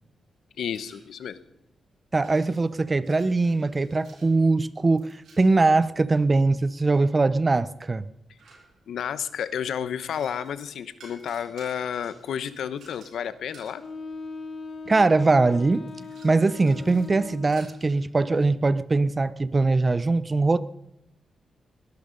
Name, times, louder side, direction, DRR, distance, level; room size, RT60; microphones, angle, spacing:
voice 1, 0.6-1.4 8.9-13.8, left 8 dB, 85° left, 14 dB, 0.9 m, -31 dB
sound 1, 0.6-1.4 2.2-6.2 7.1-9.1 9.8-13.9 14.8-14.9 15.2-18.5, right 4 dB, 80° right, 6.8 m, -55 dB
voice 2, 2.1-5.1 5.4-8.1 14.9-15.9 16.2-20.6, right 3 dB, 30° right, 17 dB, 0.7 m, -21 dB
Wind instrument woodwind instrument, 13.8-17.9, left 4 dB, 50° left, 2.4 m, -39 dB
21.5 x 12.0 x 5.3 m, 0.85 s
cardioid pair, 95°, 0 cm